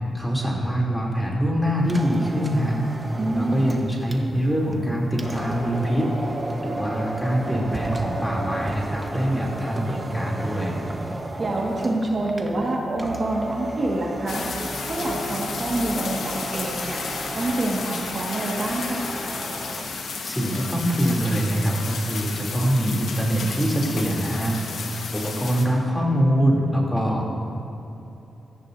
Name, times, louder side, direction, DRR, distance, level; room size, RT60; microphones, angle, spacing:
voice 1, 0.1-2.9 3.3-10.8 20.3-27.3, equal, 5° left, -3 dB, 3.0 m, -24 dB
sound 1, 1.8-20.0, right 1 dB, 20° right, 1.1 m, -34 dB
voice 2, 3.2-3.7 11.4-14.4 14.9-17.0 17.4-19.0, right 2 dB, 45° right, -2 dB, 1.7 m, -26 dB
sound 2, 14.3-25.7, left 4 dB, 80° left, 1.4 m, -32 dB
17.5 x 13.5 x 2.7 m, 2.9 s
cardioid pair, 75°, 0 cm